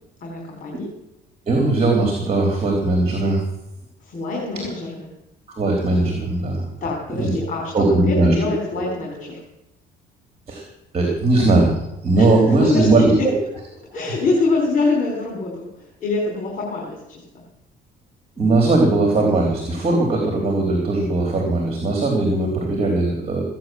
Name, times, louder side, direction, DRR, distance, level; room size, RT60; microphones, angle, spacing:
voice 1, 0.2-0.9 4.0-5.1 6.8-9.4 12.2-13.3 13.9-17.4, left 3 dB, 50° left, 0 dB, 4.1 m, -25 dB
voice 2, 1.5-3.4 5.5-6.7 7.2-7.3 7.7-8.4 10.5-10.7 10.9-13.3 18.4-23.4, right 2 dB, 35° right, 2 dB, 3.8 m, -19 dB
16.0 x 9.3 x 7.8 m, 0.90 s
cardioid pair, 110°, 17 cm